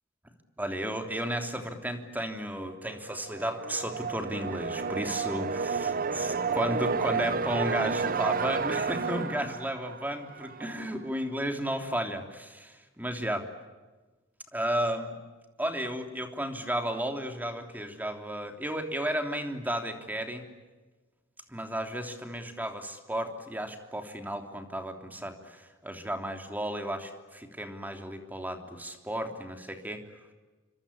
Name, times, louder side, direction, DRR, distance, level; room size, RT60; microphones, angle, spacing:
voice 1, 0.6-13.5 14.5-15.1 15.6-20.4 21.5-30.0, equal, 10° right, 5 dB, 3.2 m, -33 dB
sound 1, 3.1-10.8, right 5 dB, 45° right, 0.8 m, -31 dB
27.5 x 25.0 x 8.6 m, 1.2 s
head